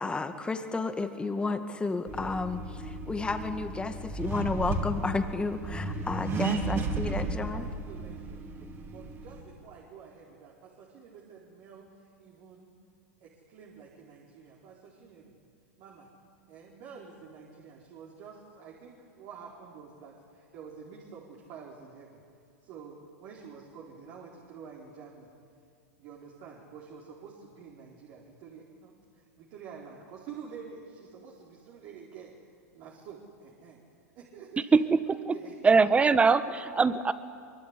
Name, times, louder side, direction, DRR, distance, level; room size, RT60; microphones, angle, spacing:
voice 1, 0.0-7.7, left 3 dB, 10° left, 8 dB, 2.0 m, -32 dB
Accelerating revving vroom, 2.1-9.4, right 3 dB, 30° right, 4.3 m, -34 dB
voice 2, 6.6-8.4 8.9-12.7 13.2-15.3 15.8-16.1 16.5-22.2 22.6-25.3 26.0-28.9 29.4-32.3 32.7-33.8 34.1-34.7 35.3-35.6, right 6 dB, 50° right, -2 dB, 4.3 m, -48 dB
voice 3, 34.7-35.4 35.6-37.1, right 4 dB, 15° right, 13 dB, 1.3 m, -22 dB
24.0 x 23.0 x 9.8 m, 2.3 s
hypercardioid pair, 110°, 8 cm